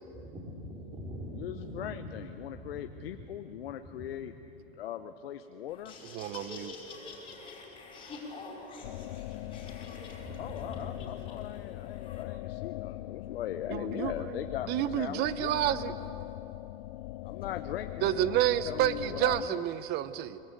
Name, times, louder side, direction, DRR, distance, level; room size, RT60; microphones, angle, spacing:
voice 1, 0.1-4.1 8.8-10.9, equal, 20° right, -1 dB, 4.3 m, -45 dB
voice 2, 1.3-4.3 4.8-5.9 10.4-15.7 17.2-19.6, left 11 dB, 70° left, 8 dB, 0.9 m, -40 dB
Laughter, 5.7-12.2, left 3 dB, 15° left, 4.8 m, -47 dB
voice 3, 6.1-6.7 13.7-14.1 14.7-15.9 18.0-20.4, right 12 dB, 35° right, 15 dB, 0.9 m, -29 dB
sound 1, 8.8-19.4, left 17 dB, 50° left, 0.6 m, -41 dB
24.0 x 20.5 x 7.9 m, 3.0 s
hypercardioid pair, 130°, 30 cm